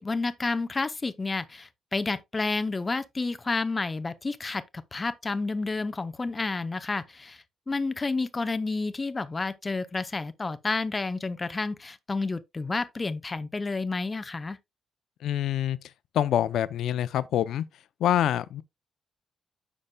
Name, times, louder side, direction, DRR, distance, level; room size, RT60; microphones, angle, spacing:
voice 1, 0.0-4.6 4.9-14.6, left 3 dB, 20° left, 0.6 m, -30 dB
voice 2, 15.2-15.8 16.1-17.6 18.0-18.6, left 11 dB, 85° left, 0.5 m, -25 dB
9.8 x 6.6 x 2.2 m
cardioid pair, 135°, 0 cm